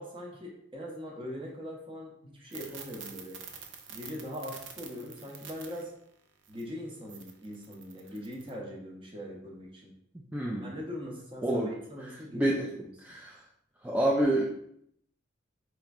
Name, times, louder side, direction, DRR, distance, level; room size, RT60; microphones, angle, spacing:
voice 1, 0.0-3.4 3.9-5.9 6.5-9.9 10.6-11.6 11.9-12.8, equal, 25° right, -1 dB, 0.7 m, -41 dB
sound 1, 2.5-5.8 6.5-6.6 7.1-8.5, right 7 dB, 70° right, 0.5 m, -46 dB
voice 2, 10.3-10.7 11.4-11.7 12.1-13.4 13.8-14.5, right 1 dB, 10° right, -4 dB, 0.3 m, -28 dB
4.3 x 3.0 x 2.4 m, 0.71 s
head